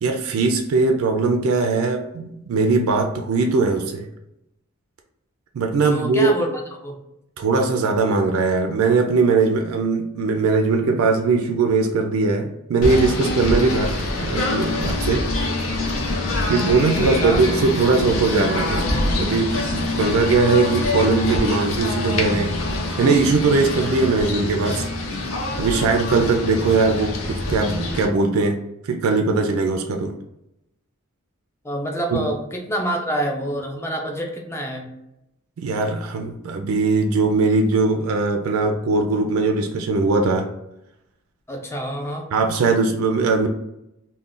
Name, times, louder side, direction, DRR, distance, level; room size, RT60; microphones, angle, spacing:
voice 1, 0.0-4.1 5.5-6.3 7.4-15.3 16.5-22.5 23.0-24.9 25.6-28.6 28.8-30.1 32.1-32.2 35.6-40.5 42.3-43.5, right 3 dB, 75° right, 4 dB, 0.3 m, -20 dB
voice 2, 5.8-6.5 6.8-7.0 17.0-17.4 31.6-34.9 41.5-42.3, right 1 dB, 10° left, 1 dB, 0.4 m, -27 dB
Singing / Bird, 12.8-28.1, left 2 dB, 70° left, 0.6 m, -25 dB
2.4 x 2.1 x 3.7 m, 0.84 s
head